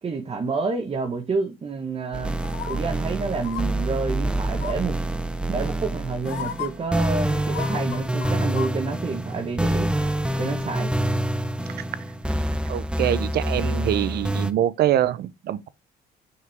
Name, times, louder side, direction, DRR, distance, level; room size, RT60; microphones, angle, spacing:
voice 1, 0.0-2.4 2.7-5.0 5.5-9.9 10.4-10.9, right 4 dB, 35° right, 1.4 m, -28 dB
sound 1, 2.1-14.5, right 1 dB, 5° right, 0.8 m, -26 dB
sound 2, 2.4-2.8 3.4-3.6 4.5-4.9 5.8-5.9 6.3-6.7 7.4-8.7 9.0-9.1, left 10 dB, 80° left, 1.0 m, -34 dB
voice 2, 12.7-15.7, right 11 dB, 70° right, 0.7 m, -24 dB
6.4 x 5.6 x 3.6 m
cardioid pair, 90°, 17 cm